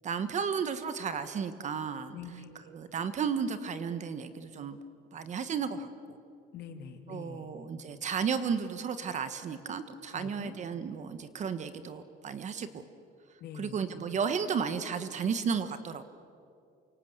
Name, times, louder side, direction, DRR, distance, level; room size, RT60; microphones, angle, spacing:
voice 1, 0.0-2.1 2.7-4.8 5.1-5.9 7.1-12.8 13.5-16.0, right 6 dB, 35° right, 11 dB, 1.3 m, -33 dB
voice 2, 2.1-2.7 6.5-7.5 10.1-10.6 13.4-13.9, left 6 dB, 55° left, 5 dB, 3.1 m, -45 dB
28.5 x 25.0 x 8.1 m, 2.5 s
cardioid pair, 160°, 20 cm